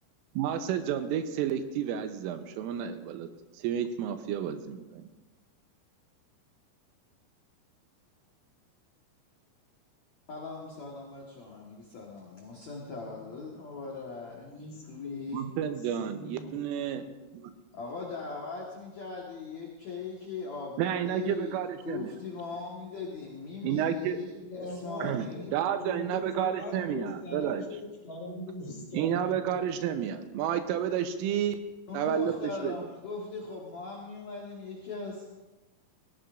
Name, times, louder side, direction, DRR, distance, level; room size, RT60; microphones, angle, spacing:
voice 1, 0.4-3.3 3.5-5.1 15.3-17.0 17.3-17.5 20.8-22.1 23.6-24.2 25.0-25.3 25.5-27.6 28.9-31.6 31.9-32.9, right 9 dB, 85° right, 8 dB, 3.4 m, -31 dB
voice 2, 10.3-15.5 17.7-25.7 31.9-35.3, left 4 dB, 75° left, -2 dB, 1.6 m, -40 dB
voice 3, 12.6-13.1 14.3-16.6 24.3-29.6, left 1 dB, 40° left, -4 dB, 4.2 m, -41 dB
18.0 x 16.0 x 2.6 m, 1.1 s
omnidirectional pair, 5.8 m